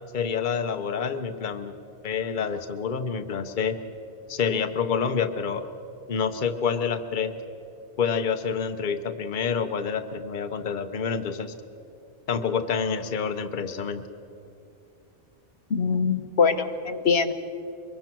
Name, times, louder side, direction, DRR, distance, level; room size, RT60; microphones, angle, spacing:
voice 1, 0.1-1.7 2.0-3.7 4.3-5.6 6.1-7.3 8.0-11.5 12.3-14.0, left 6 dB, 50° left, 8 dB, 1.0 m, -27 dB
voice 2, 15.7-17.3, left 5 dB, 85° left, 7 dB, 1.3 m, -23 dB
24.0 x 22.5 x 6.1 m, 2.6 s
omnidirectional pair, 1.1 m